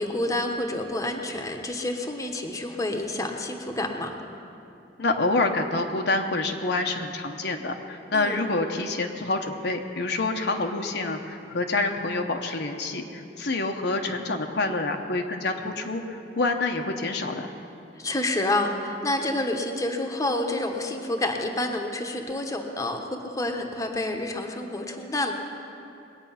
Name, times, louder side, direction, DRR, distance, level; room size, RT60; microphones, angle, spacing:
voice 1, 0.0-4.1 8.1-8.4 18.0-25.3, left 1 dB, 20° left, 3 dB, 1.0 m, -28 dB
voice 2, 5.0-17.5, left 2 dB, 65° left, 3 dB, 0.9 m, -27 dB
21.0 x 8.9 x 5.7 m, 2.7 s
head